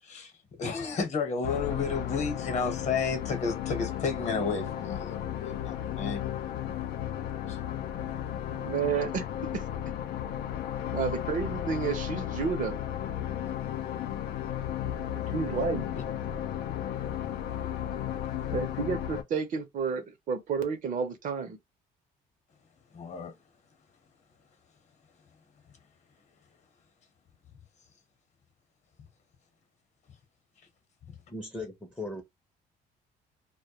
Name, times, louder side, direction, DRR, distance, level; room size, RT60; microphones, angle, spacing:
voice 1, 0.0-6.2 7.5-8.2 13.5-13.6 15.2-15.7 15.9-16.0 22.9-23.4 31.1-31.2, left 5 dB, 45° left, 0.9 m, -33 dB
sound 1, 1.4-19.2, left 10 dB, 80° left, 0.4 m, -34 dB
voice 2, 8.5-9.2 9.5-9.6 10.9-12.8 15.3-15.8 18.5-21.6, right 6 dB, 50° right, 0.6 m, -31 dB
voice 3, 31.3-32.2, left 2 dB, 5° left, 0.6 m, -38 dB
2.2 x 2.1 x 2.8 m
cardioid pair, 110°, 17 cm